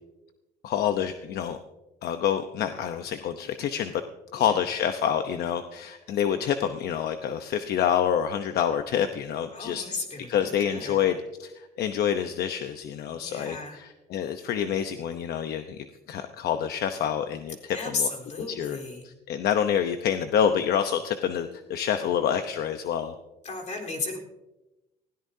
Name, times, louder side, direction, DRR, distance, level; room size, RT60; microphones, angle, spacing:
voice 1, 0.6-1.6 2.0-3.9 4.3-9.9 10.3-18.1 18.5-18.8 19.0-23.1, left 9 dB, 70° left, 8 dB, 0.9 m, -27 dB
voice 2, 9.5-11.1 13.2-13.8 17.7-19.1 23.4-24.2, left 4 dB, 45° left, -1 dB, 4.0 m, -34 dB
20.0 x 17.0 x 2.8 m, 1.0 s
cardioid pair, 110°, 17 cm